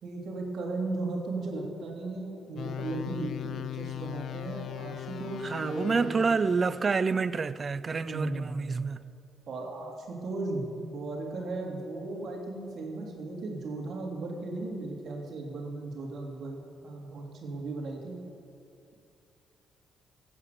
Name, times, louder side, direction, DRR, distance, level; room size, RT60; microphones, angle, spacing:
voice 1, 0.0-6.1 8.0-8.9 9.5-18.2, right 2 dB, 65° right, 2.8 m, -36 dB
sound 1, 2.6-7.0, left 12 dB, 65° left, 0.5 m, -39 dB
voice 2, 5.4-9.0, right 4 dB, 40° right, 0.5 m, -28 dB
15.5 x 8.7 x 6.5 m
cardioid pair, 80°, 0 cm